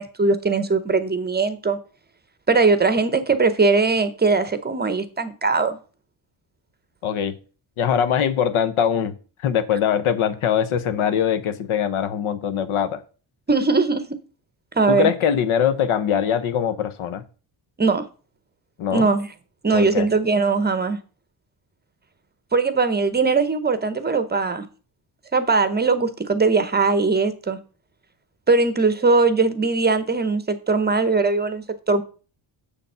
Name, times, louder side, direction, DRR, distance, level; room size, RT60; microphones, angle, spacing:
voice 1, 0.0-1.8 2.5-5.8 13.5-14.0 14.7-15.1 17.8-18.1 18.9-19.3 19.6-21.0 22.5-24.7 25.3-27.6 28.5-32.0, right 4 dB, 20° right, 0.7 m, -20 dB
voice 2, 7.0-7.3 7.8-13.0 14.9-17.2 18.8-19.1 19.7-20.1, left 8 dB, 80° left, 1.1 m, -22 dB
7.1 x 6.9 x 5.5 m
cardioid pair, 150°, 49 cm